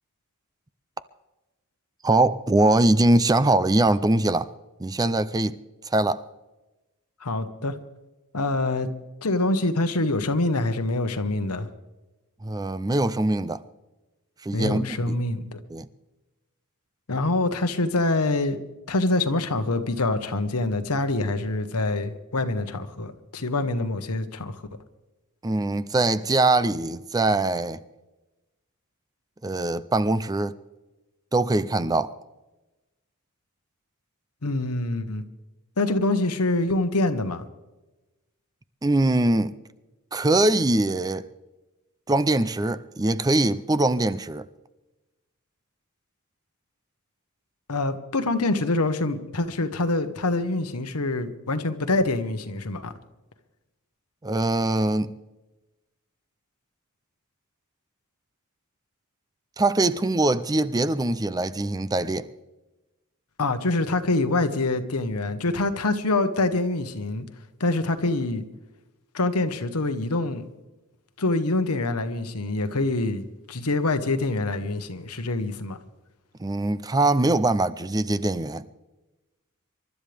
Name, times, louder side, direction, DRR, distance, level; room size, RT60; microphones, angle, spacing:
voice 1, 2.0-4.5 4.8-5.6 5.9-6.2 12.4-13.6 14.4-15.2 15.7-15.9 25.4-27.8 29.4-30.6 31.3-32.1 38.8-39.5 40.1-41.3 42.1-44.5 54.2-55.1 59.6-62.3 76.4-78.6, right 2 dB, 15° right, 0.5 m, -22 dB
voice 2, 7.2-7.7 8.3-8.9 9.2-11.7 14.5-15.6 17.1-18.6 18.9-24.6 34.4-35.2 35.8-37.4 47.7-52.9 63.4-67.3 67.6-68.4 69.1-70.5 71.2-75.8, left 2 dB, 90° left, 1.2 m, -25 dB
27.5 x 12.5 x 3.5 m
head